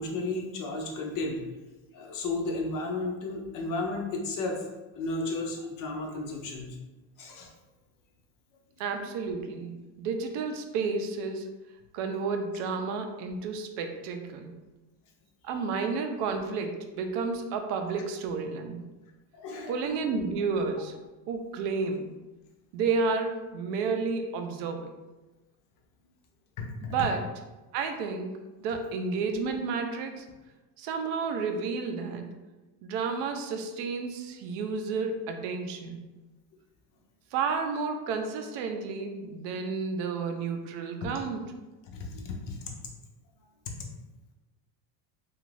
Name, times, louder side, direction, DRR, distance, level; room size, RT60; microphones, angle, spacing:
voice 1, 0.0-1.4 1.9-4.6 4.9-6.8 7.2-7.5 19.3-20.0 26.6-27.1 41.9-42.6, left 2 dB, 40° left, 1 dB, 0.5 m, -33 dB
voice 2, 8.8-11.5 11.9-14.6 15.4-18.8 19.7-20.9 21.3-22.1 22.7-25.0 26.8-27.2 27.7-28.3 28.6-30.3 30.8-32.3 32.8-36.0 37.3-41.4, right 4 dB, 60° right, 5 dB, 0.5 m, -31 dB
2.5 x 2.5 x 3.1 m, 1.1 s
supercardioid pair, 135°, 50 cm